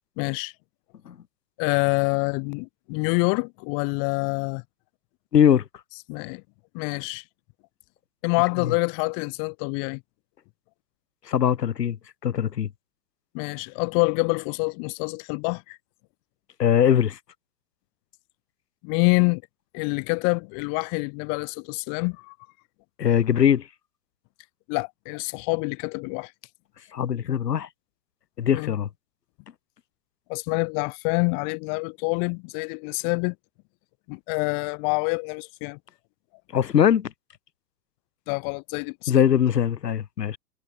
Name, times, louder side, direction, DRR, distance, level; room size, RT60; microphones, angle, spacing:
voice 1, 0.2-0.5 1.6-4.6 6.1-6.4 6.7-7.2 8.2-10.0 13.3-15.8 18.8-19.4 19.7-22.3 24.7-26.3 28.5-28.7 30.3-33.4 34.1-35.8 38.3-39.2, left 40 dB or more, 45° left, 1.7 m, -26 dB
voice 2, 5.3-5.6 8.6-8.7 11.3-12.0 12.2-12.7 16.6-17.2 23.0-23.7 26.9-27.7 28.4-28.9 36.5-37.1 39.1-40.4, left 9 dB, 90° left, 4.7 m, -21 dB
hypercardioid pair, 120°, 47 cm